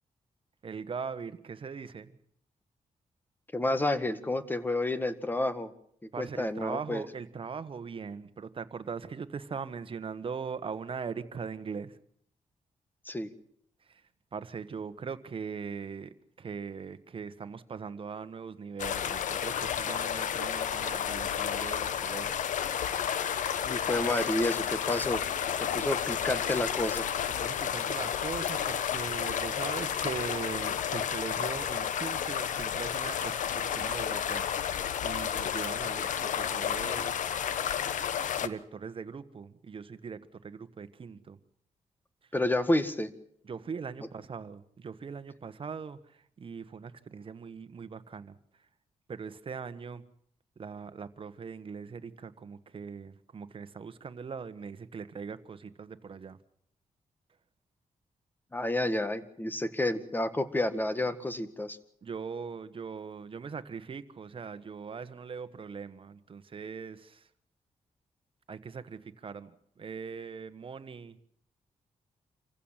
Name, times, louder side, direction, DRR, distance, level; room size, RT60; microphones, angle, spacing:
voice 1, 0.6-2.2 6.1-12.0 13.8-14.0 14.3-22.4 27.4-34.5 35.0-37.4 38.4-41.4 43.4-48.4 49.1-50.0 50.6-56.4 62.0-67.3 68.5-71.2, right 5 dB, 45° right, 11 dB, 1.4 m, -40 dB
voice 2, 3.5-5.7 6.2-7.0 13.1-13.3 23.7-25.2 25.7-27.1 42.3-43.1 58.5-61.8, left 1 dB, 15° left, 12 dB, 1.7 m, -30 dB
sound 1, 18.8-38.5, left 9 dB, 85° left, 1.1 m, -31 dB
27.0 x 15.5 x 7.4 m, 0.68 s
cardioid pair, 110°, 13 cm